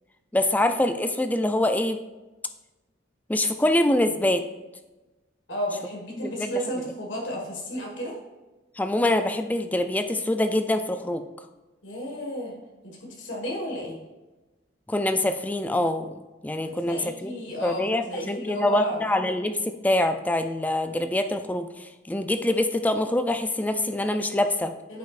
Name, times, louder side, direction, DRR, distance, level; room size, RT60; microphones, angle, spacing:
voice 1, 0.3-2.0 3.3-4.4 6.2-6.5 8.8-11.2 14.9-17.3 17.6-24.7, left 1 dB, 10° left, 8 dB, 0.3 m, -25 dB
voice 2, 5.5-8.2 11.8-12.5 12.8-14.0 16.8-19.0 24.9-25.0, equal, 80° left, -1 dB, 1.7 m, -32 dB
9.0 x 5.4 x 2.5 m, 1.1 s
head